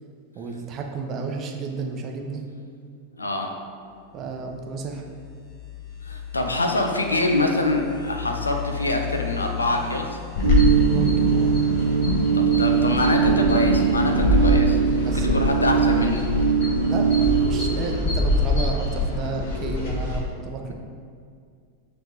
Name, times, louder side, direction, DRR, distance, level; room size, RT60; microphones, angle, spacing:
voice 1, 0.4-2.4 4.1-5.0 10.9-11.5 15.0-15.5 16.9-17.1 17.4-20.7, right 4 dB, 30° right, 2 dB, 0.7 m, -32 dB
voice 2, 3.2-3.5 6.0-10.2 12.3-16.2, left 2 dB, 80° left, 3 dB, 0.6 m, -25 dB
sound 1, 4.1-14.7, left 10 dB, 30° left, 0.7 m, -37 dB
sound 2, 10.4-20.2, left 2 dB, 50° left, 1.2 m, -24 dB
sound 3, 10.4-17.5, right 6 dB, 75° right, 0.4 m, -21 dB
8.7 x 3.3 x 3.4 m, 2.2 s
figure-of-eight pair, 90°, 0 cm